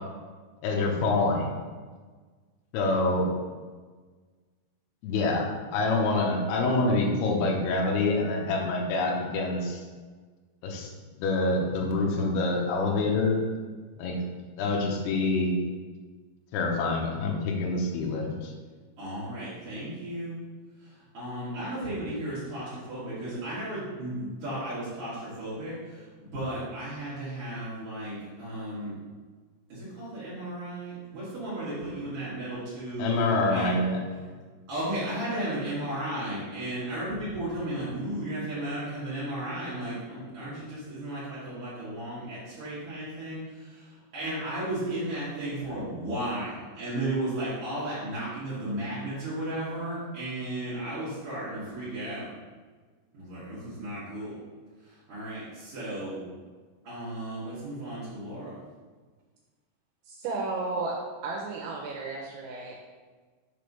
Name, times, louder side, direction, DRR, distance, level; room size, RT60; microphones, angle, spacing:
voice 1, 0.6-1.5 2.7-3.3 5.0-5.4 5.7-9.8 10.6-10.9 11.2-13.4 14.0-14.1 14.6-15.6 16.5-18.5 33.0-34.1, left 2 dB, 80° left, -1 dB, 2.4 m, -26 dB
voice 2, 19.0-20.4 21.1-28.9 29.7-33.0 33.5-33.7 34.7-43.9 44.1-52.3 53.1-54.3 55.1-56.2 56.8-58.5, right 1 dB, 55° right, -12 dB, 1.6 m, -34 dB
voice 3, 60.1-61.0 61.2-62.9, right 3 dB, 80° right, -2 dB, 2.9 m, -33 dB
6.9 x 3.3 x 5.4 m, 1.4 s
omnidirectional pair, 5.7 m